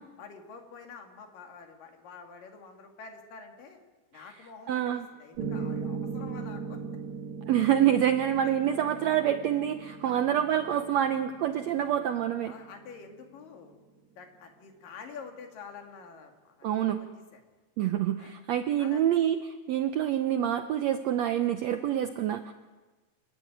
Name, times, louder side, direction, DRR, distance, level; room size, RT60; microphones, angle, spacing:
voice 1, 0.2-3.8 4.1-6.8 8.2-8.5 10.0-10.3 12.5-13.8 14.2-17.4 18.2-18.3 18.8-19.0, left 5 dB, 70° left, 4 dB, 3.9 m, -47 dB
voice 2, 4.7-5.0 7.5-12.5 16.6-17.0 17.8-19.4 19.7-22.5, right 10 dB, 85° right, 9 dB, 1.5 m, -26 dB
Piano, 5.4-13.4, right 5 dB, 55° right, 3.1 m, -39 dB
28.0 x 12.5 x 9.1 m, 1.2 s
omnidirectional pair, 4.1 m